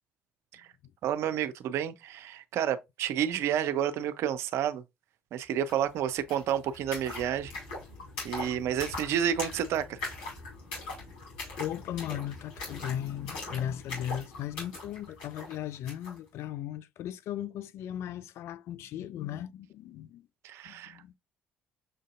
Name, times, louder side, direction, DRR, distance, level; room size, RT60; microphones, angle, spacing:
voice 1, 1.0-4.8 5.3-7.5 8.2-10.0 20.4-21.0, right 9 dB, 60° right, 0.5 m, -30 dB
sound 1, 5.7-5.8 6.0-16.2, left 3 dB, 75° left, 2.1 m, -41 dB
voice 2, 11.6-20.3 20.6-21.2, left 11 dB, 60° left, 0.3 m, -37 dB
6.2 x 2.6 x 2.4 m
hypercardioid pair, 55°, 5 cm